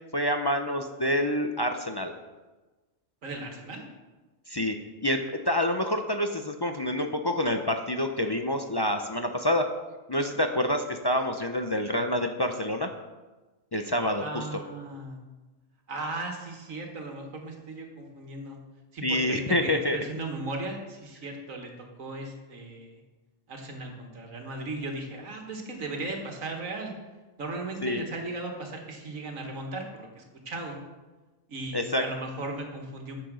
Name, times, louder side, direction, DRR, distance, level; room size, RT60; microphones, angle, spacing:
voice 1, 0.1-2.1 4.5-4.8 5.0-9.7 10.1-12.9 13.7-14.4 19.0-20.0 27.8-28.0 31.7-32.0, left 1 dB, 35° left, 5 dB, 0.4 m, -27 dB
voice 2, 3.2-3.8 14.2-15.2 15.9-18.6 18.9-23.0 23.5-26.9 27.4-30.8 31.5-33.2, right 2 dB, 85° right, 2 dB, 2.0 m, -37 dB
8.9 x 7.5 x 6.3 m, 1.2 s
omnidirectional pair, 1.4 m